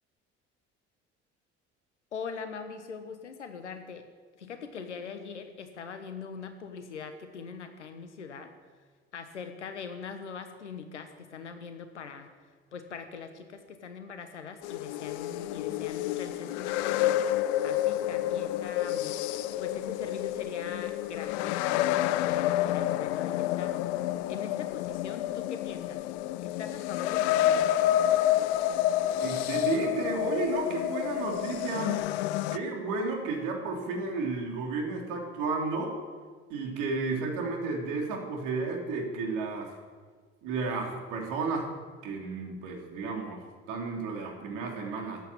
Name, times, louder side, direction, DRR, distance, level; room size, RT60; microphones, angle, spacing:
voice 1, 2.1-4.1 4.4-8.5 9.1-12.3 12.7-19.1 19.6-23.9 24.3-26.0 26.4-27.8, left 6 dB, 90° left, 8 dB, 1.3 m, -42 dB
sound 1, 14.6-32.6, left 13 dB, 70° left, 0.7 m, -29 dB
voice 2, 29.2-32.0 32.5-36.0 36.5-39.7 40.4-41.7 42.0-43.4 43.7-45.2, right 4 dB, 65° right, 1 dB, 3.4 m, -32 dB
13.5 x 8.7 x 9.9 m, 1.5 s
hypercardioid pair, 60°, 34 cm